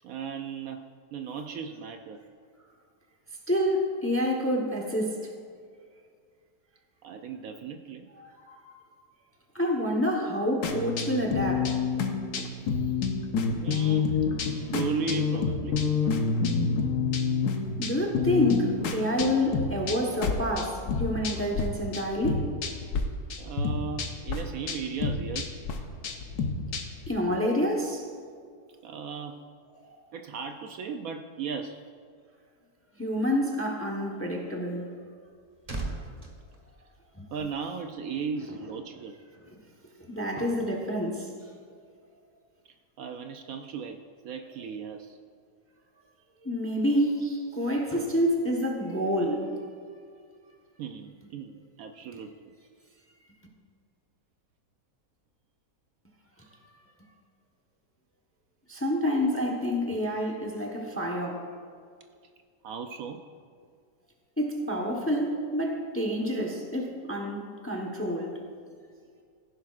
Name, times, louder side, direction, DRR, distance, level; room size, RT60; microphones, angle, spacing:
voice 1, 0.0-2.2 7.0-8.1 12.7-12.9 13.6-14.2 14.5-15.8 23.4-25.6 28.8-29.4 30.1-31.8 37.3-39.2 43.0-45.2 50.8-52.5 62.6-63.2, right 6 dB, 70° right, 6 dB, 0.9 m, -36 dB
voice 2, 3.5-5.3 8.2-8.7 9.5-11.8 17.8-22.5 27.1-28.1 29.8-29.9 33.0-34.9 35.9-36.0 37.1-37.3 40.1-41.3 46.4-49.5 58.7-61.4 64.4-68.4, equal, 10° left, 1 dB, 0.7 m, -28 dB
sound 1, 10.6-21.7 21.9-23.0 23.3-27.1, left 5 dB, 75° left, 1.4 m, -28 dB
sound 2, 35.2-37.6 37.9-38.1, right 2 dB, 25° right, 1.0 m, -40 dB
15.5 x 10.5 x 2.4 m, 2.1 s
omnidirectional pair, 1.7 m